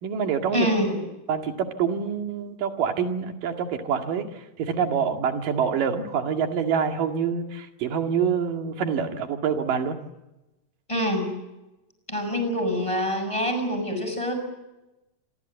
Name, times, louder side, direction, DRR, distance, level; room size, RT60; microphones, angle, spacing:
voice 1, 0.0-0.7 1.3-10.0, right 7 dB, 80° right, 5 dB, 3.8 m, -26 dB
voice 2, 0.5-1.0 10.9-11.3 12.1-14.4, equal, 10° left, 6 dB, 6.5 m, -25 dB
28.0 x 22.5 x 8.2 m, 0.98 s
omnidirectional pair, 3.8 m